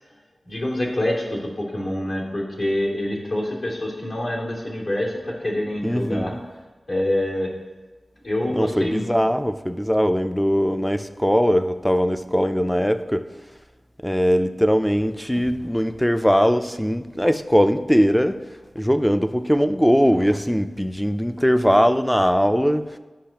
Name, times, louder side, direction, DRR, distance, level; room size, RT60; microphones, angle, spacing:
voice 1, 0.4-6.3 6.9-7.5 8.2-9.0, left 1 dB, 70° left, -4 dB, 2.6 m, -26 dB
voice 2, 5.8-6.4 8.5-13.2 14.0-18.4 18.8-22.8, equal, 5° left, 9 dB, 0.4 m, -20 dB
12.0 x 5.5 x 2.9 m, 1.2 s
wide cardioid pair, 90°, 0 cm